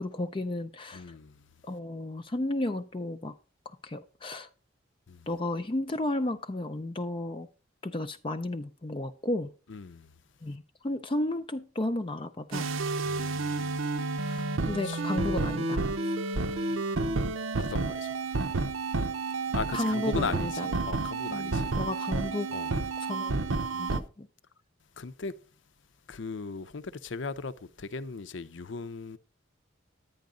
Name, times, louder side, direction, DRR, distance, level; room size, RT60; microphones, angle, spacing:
voice 1, 0.0-1.1 1.6-3.4 3.8-4.5 5.3-7.5 7.8-9.5 10.4-12.7 14.7-15.8 19.7-20.7 21.3-22.5 23.0-23.4 23.7-24.3, left 1 dB, 25° left, 0.5 m, -33 dB
voice 2, 0.9-1.4 5.1-5.3 9.7-10.1 13.0-14.5 14.8-15.0 17.6-18.5 19.5-21.7 22.5-22.8 23.7-24.0 25.0-25.3 26.1-29.2, left 4 dB, 65° left, 0.7 m, -38 dB
sound 1, 12.5-24.0, right 3 dB, 90° right, 0.8 m, -30 dB
10.5 x 9.4 x 3.8 m
head